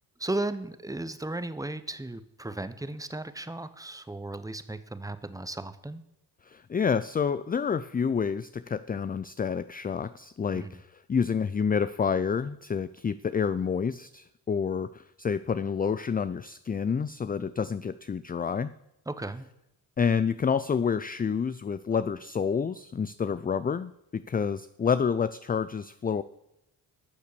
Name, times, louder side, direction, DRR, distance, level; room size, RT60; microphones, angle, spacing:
voice 1, 0.2-6.0 10.5-10.8 19.1-19.5, right 2 dB, 10° right, 12 dB, 1.0 m, -35 dB
voice 2, 6.5-18.7 20.0-26.2, left 6 dB, 20° left, 14 dB, 0.4 m, -28 dB
12.0 x 6.7 x 6.8 m, 0.86 s
supercardioid pair, 60°, 43 cm